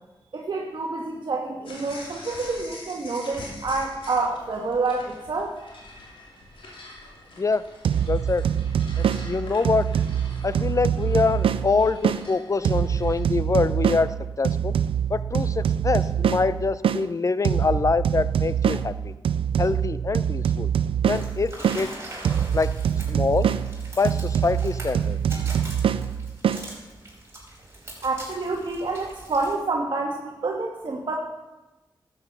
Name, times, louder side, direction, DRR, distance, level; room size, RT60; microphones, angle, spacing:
voice 1, 0.3-5.5 28.0-31.2, right 3 dB, 60° right, -1 dB, 1.4 m, -28 dB
sound 1, 1.6-13.2, left 2 dB, 75° left, 2.6 m, -44 dB
sound 2, 7.8-12.2 12.6-17.0 17.4-21.8 22.2-26.6, right 8 dB, 85° right, 0.4 m, -24 dB
voice 2, 8.1-8.5 9.0-9.9 10.4-14.7 15.1-19.1 19.6-20.7 21.1-21.9 22.5-22.7 23.1-23.5 24.0-25.2, left 4 dB, 35° left, 15 dB, 0.6 m, -25 dB
sound 3, 21.1-29.5, right 1 dB, 30° right, 5.1 m, -42 dB
12.5 x 8.2 x 5.6 m, 1.1 s
cardioid pair, 60°, 9 cm